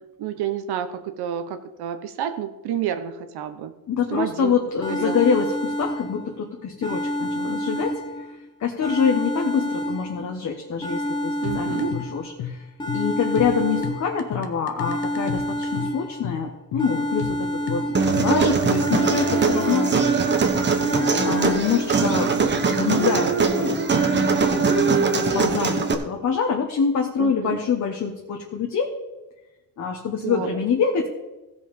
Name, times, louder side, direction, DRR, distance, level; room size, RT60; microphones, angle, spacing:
voice 1, 0.2-3.7 4.1-4.5 5.0-5.2 11.4-12.0 27.2-27.6 30.2-30.5, right 10 dB, 85° right, 8 dB, 0.9 m, -29 dB
voice 2, 3.9-8.2 8.6-12.6 12.9-19.9 21.2-28.9 29.8-31.1, left 6 dB, 50° left, 1 dB, 1.3 m, -25 dB
sound 1, 4.8-6.4 6.8-8.4 8.8-10.4 10.8-12.4 12.8-14.4 14.8-16.4 16.8-18.4 18.8-20.4 20.8-21.6, equal, 10° left, 1.0 m, -29 dB
sound 2, 11.4-19.0, left 9 dB, 85° left, 1.2 m, -34 dB
Human voice, 17.9-25.9, right 4 dB, 30° right, 1.1 m, -21 dB
15.5 x 5.4 x 5.4 m, 1.1 s
cardioid pair, 135°, 38 cm